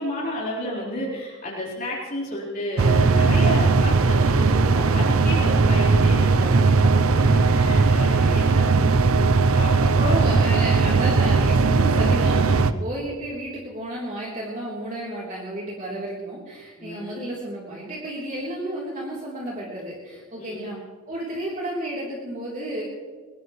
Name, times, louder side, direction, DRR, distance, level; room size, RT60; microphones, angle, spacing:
voice 1, 0.0-6.5 6.8-8.7 9.5-10.2 16.8-17.2 20.4-20.7, left 1 dB, 40° left, -6 dB, 4.3 m, -32 dB
sound 1, 2.8-12.7, right 4 dB, 70° right, 0.6 m, -18 dB
voice 2, 9.8-20.8 21.1-22.8, right 1 dB, 35° right, -5 dB, 3.6 m, -32 dB
22.5 x 19.5 x 3.2 m, 1.5 s
head